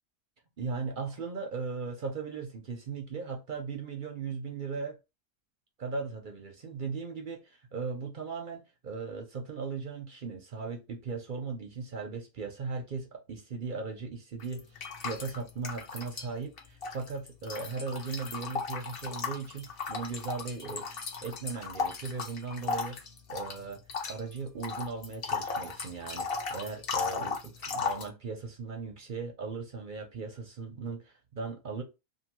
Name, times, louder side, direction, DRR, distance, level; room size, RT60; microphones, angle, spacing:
voice 1, 0.6-5.0 5.8-20.9 21.2-23.0 23.3-23.8 24.1-31.8, right 4 dB, 55° right, 0.6 m, -38 dB
sound 1, 14.4-16.3 16.6-28.1, left 5 dB, 50° left, 0.8 m, -36 dB
2.7 x 2.6 x 2.9 m
omnidirectional pair, 1.4 m